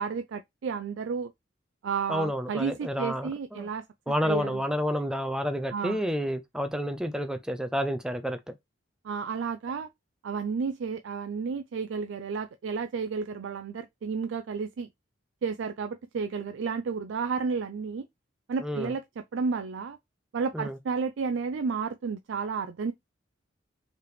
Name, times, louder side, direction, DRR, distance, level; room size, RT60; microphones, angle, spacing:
voice 1, 0.0-1.3 1.8-3.8 4.2-4.6 5.7-6.0 9.0-9.9 10.2-14.9 15.4-18.1 18.5-19.0 19.3-20.0 20.3-22.9, right 5 dB, 70° right, 0.4 m, -32 dB
voice 2, 2.1-3.7 4.1-8.4 18.6-18.9 20.5-20.8, equal, 5° right, 0.4 m, -30 dB
4.7 x 3.3 x 3.1 m
head